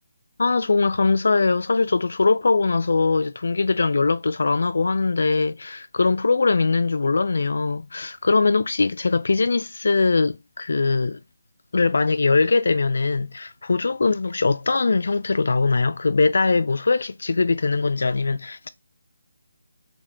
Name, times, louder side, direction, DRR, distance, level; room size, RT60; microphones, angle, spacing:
voice 1, 0.4-11.2 11.7-18.7, left 3 dB, 65° left, 0.3 m, -21 dB
3.2 x 2.1 x 3.7 m
figure-of-eight pair, 150°, 0 cm